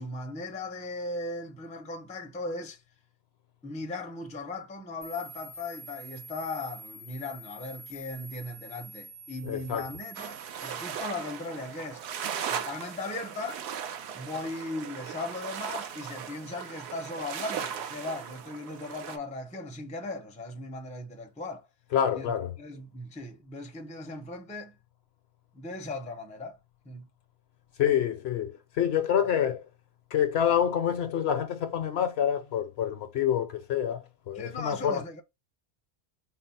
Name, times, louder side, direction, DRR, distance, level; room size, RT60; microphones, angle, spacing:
voice 1, 0.0-2.8 3.6-12.0 12.5-13.6 14.1-21.7 22.1-24.8 25.5-26.6 26.8-27.1 29.2-29.3 34.3-35.2, left 2 dB, 10° left, 0.4 m, -38 dB
sound 1, 5.0-11.0, right 1 dB, 85° right, 1.3 m, -47 dB
voice 2, 9.5-9.8 21.9-22.5 27.8-29.6 30.1-34.0 34.3-35.0, left 9 dB, 65° left, 0.8 m, -27 dB
sound 2, 10.1-19.2, right 8 dB, 65° right, 0.8 m, -38 dB
4.1 x 2.0 x 4.0 m
omnidirectional pair, 1.2 m